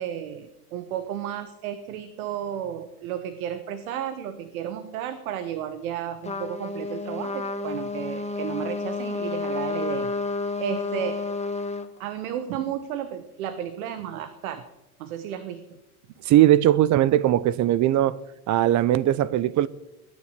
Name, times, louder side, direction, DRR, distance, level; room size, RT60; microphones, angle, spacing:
voice 1, 0.0-10.1 10.6-11.2 12.0-14.6 15.0-15.8, right 10 dB, 70° right, 1.4 m, -33 dB
Trumpet, 6.2-11.9, left 3 dB, 15° left, 1.5 m, -30 dB
voice 2, 16.2-18.2 18.5-19.7, right 13 dB, 40° right, 0.8 m, -19 dB
21.0 x 9.9 x 6.8 m
hypercardioid pair, 80°, 44 cm